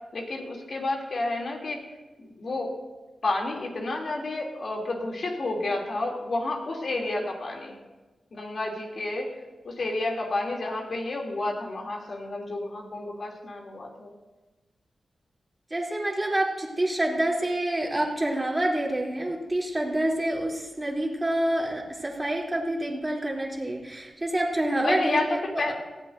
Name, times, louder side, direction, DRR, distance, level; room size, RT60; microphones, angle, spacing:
voice 1, 0.1-1.8 2.2-2.7 3.2-7.8 8.3-9.3 9.6-14.1 24.8-25.3 25.6-25.7, left 2 dB, 60° left, 0 dB, 3.0 m, -30 dB
voice 2, 15.7-25.7, right 1 dB, 20° right, -2 dB, 3.1 m, -27 dB
18.5 x 15.0 x 2.7 m, 1.2 s
wide cardioid pair, 100°, 0 cm